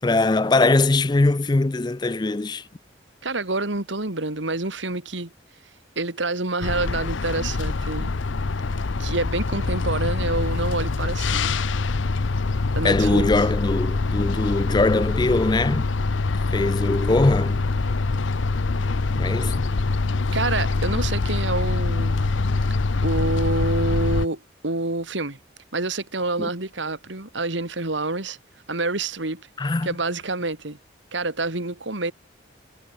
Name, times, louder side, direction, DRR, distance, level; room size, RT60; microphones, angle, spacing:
voice 1, 0.0-2.7 12.8-15.9 16.5-17.6 19.2-19.7 26.4-26.5 29.6-29.9, left 2 dB, 25° left, 0.4 m, -21 dB
voice 2, 3.2-5.3 6.0-8.2 9.0-11.6 12.7-13.3 20.3-22.2 23.0-25.4 25.7-28.4 28.7-29.5 29.8-30.8 31.1-32.1, right 2 dB, 80° right, 2.8 m, -27 dB
sound 1, 6.6-24.3, left 3 dB, 85° left, 0.8 m, -24 dB
head